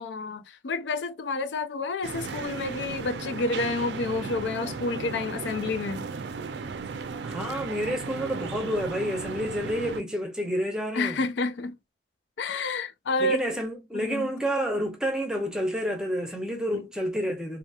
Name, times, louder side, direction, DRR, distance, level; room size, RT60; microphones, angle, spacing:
voice 1, 0.0-6.1 10.9-11.8 12.4-13.5 13.9-14.3 16.7-16.8, left 3 dB, 85° left, 0.4 m, -29 dB
sound 1, 2.0-10.0, right 4 dB, 80° right, 0.4 m, -35 dB
voice 2, 7.2-11.2 13.2-17.6, equal, 5° right, 0.6 m, -29 dB
2.8 x 2.7 x 2.3 m
head